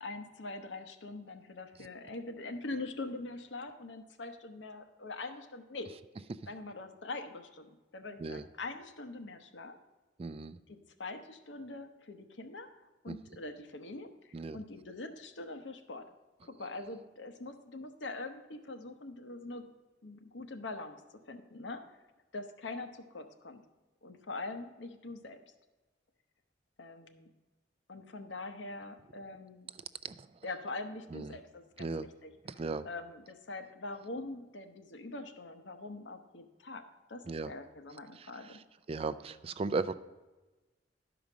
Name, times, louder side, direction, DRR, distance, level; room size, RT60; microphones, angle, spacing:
voice 1, 0.0-5.9 6.5-9.8 10.7-12.7 13.0-16.1 16.4-19.6 20.0-21.0 21.3-21.8 22.3-23.6 24.0-25.4 26.8-27.3 27.9-29.7 30.4-36.8 37.1-38.6, left 2 dB, 80° left, 7 dB, 0.9 m, -43 dB
voice 2, 10.2-10.6 13.1-13.2 14.3-14.6 30.0-30.3 31.1-31.4 31.8-32.1 32.4-32.9 37.3-37.5 38.2-38.6 38.9-39.9, right 4 dB, 30° right, 13 dB, 0.3 m, -36 dB
11.5 x 5.1 x 6.1 m, 1.1 s
head